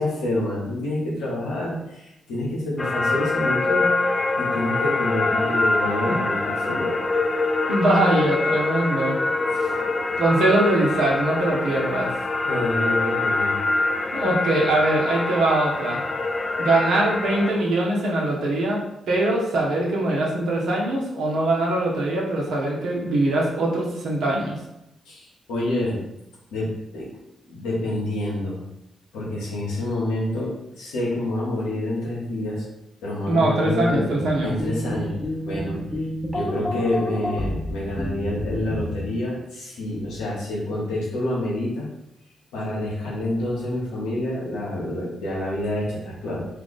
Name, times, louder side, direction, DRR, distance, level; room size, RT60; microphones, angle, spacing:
voice 1, 0.0-7.0 9.5-9.8 12.4-13.6 25.1-26.0 26.5-27.1 27.4-28.6 29.1-32.7 33.0-35.2 35.4-35.8 36.3-41.9 42.5-46.5, left 1 dB, 85° left, -5 dB, 1.1 m, -28 dB
sound 1, 2.8-17.5, left 3 dB, 40° left, 0.3 m, -24 dB
voice 2, 7.7-9.2 9.6-9.7 10.2-12.1 14.1-16.0 16.6-18.8 19.1-24.6 33.3-34.5, right 2 dB, 75° right, -3 dB, 0.9 m, -22 dB
sound 2, 33.8-39.1, left 1 dB, 5° left, 0.8 m, -30 dB
2.8 x 2.5 x 3.9 m, 0.88 s
hypercardioid pair, 45°, 0 cm